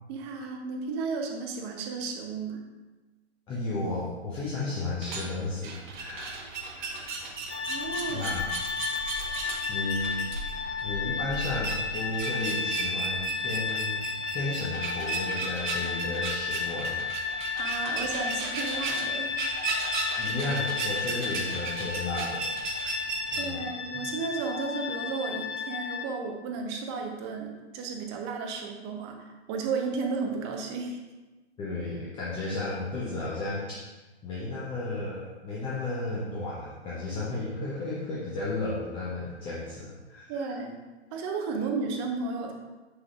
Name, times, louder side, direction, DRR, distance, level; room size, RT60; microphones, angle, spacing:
voice 1, 0.1-2.6 7.7-8.3 17.6-19.5 23.4-31.0 40.3-40.8 41.1-42.5, right 4 dB, 25° right, 2 dB, 0.8 m, -33 dB
voice 2, 3.5-6.4 6.8-7.1 8.1-8.7 9.3-10.3 10.5-14.1 14.3-17.0 20.2-22.9 23.3-23.7 31.6-33.7 34.2-40.5, left 2 dB, 15° left, -7 dB, 0.8 m, -34 dB
sound 1, 4.9-23.4, right 3 dB, 45° right, 1.2 m, -35 dB
sound 2, 7.5-26.0, left 6 dB, 80° left, 0.7 m, -34 dB
7.4 x 6.3 x 2.4 m, 1.2 s
figure-of-eight pair, 120°, 34 cm